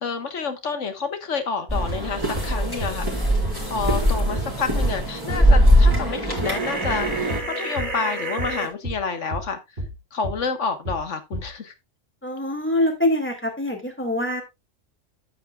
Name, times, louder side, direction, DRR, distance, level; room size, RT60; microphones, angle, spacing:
voice 1, 0.0-3.1 3.7-9.6 10.1-11.7, left 5 dB, 80° left, 1.7 m, -29 dB
sound 1, 1.7-7.4, equal, 20° right, 4.3 m, -21 dB
sound 2, 1.9-2.1 2.3-2.5 2.8-3.0 3.4-3.6 3.9-4.1 4.4-4.6 4.8-5.0 5.3-5.5 5.9-6.1 6.4-6.6 6.8-7.0 7.3-7.5 7.8-8.0 8.4-8.6 8.8-9.0 9.3-9.5 9.8-10.0 10.2-10.4 10.8-11.0 11.3-11.5, equal, 45° right, 2.5 m, -32 dB
sound 3, 6.4-8.7, right 2 dB, 65° right, 4.4 m, -30 dB
voice 2, 12.2-14.4, left 1 dB, 10° left, 2.6 m, -24 dB
12.0 x 8.8 x 2.4 m
omnidirectional pair, 1.2 m